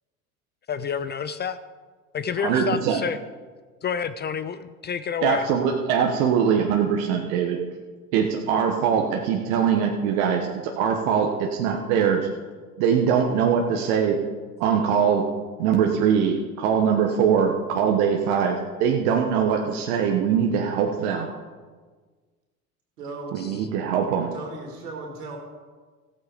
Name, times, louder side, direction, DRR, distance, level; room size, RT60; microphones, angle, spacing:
voice 1, 0.7-1.6 2.1-3.2 3.8-5.4 23.4-23.7, left 7 dB, 25° left, 13 dB, 0.4 m, -29 dB
voice 2, 2.4-3.0 5.2-7.6 8.1-12.3 12.8-14.2 14.6-15.2 15.6-21.3 23.3-24.3, right 7 dB, 65° right, 2 dB, 1.4 m, -22 dB
voice 3, 23.0-23.4 24.3-25.4, right 3 dB, 80° right, 0 dB, 3.3 m, -36 dB
15.0 x 8.6 x 5.2 m, 1.4 s
hypercardioid pair, 75°, 46 cm